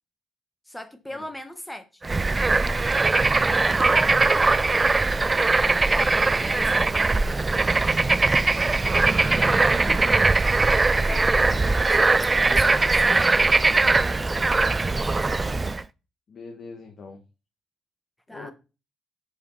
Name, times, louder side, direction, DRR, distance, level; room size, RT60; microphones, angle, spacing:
voice 1, 0.7-2.0 4.8-5.3 5.5-7.4 9.4-9.8 11.1-15.6 18.3-18.5, left 1 dB, 5° left, 1.3 m, -39 dB
Bird / Frog, 2.0-15.8, right 3 dB, 25° right, 0.4 m, -21 dB
voice 2, 9.2-10.1 16.3-17.2 18.3-18.5, left 4 dB, 50° left, 1.7 m, -42 dB
6.7 x 5.4 x 5.7 m
cardioid pair, 90°, 0 cm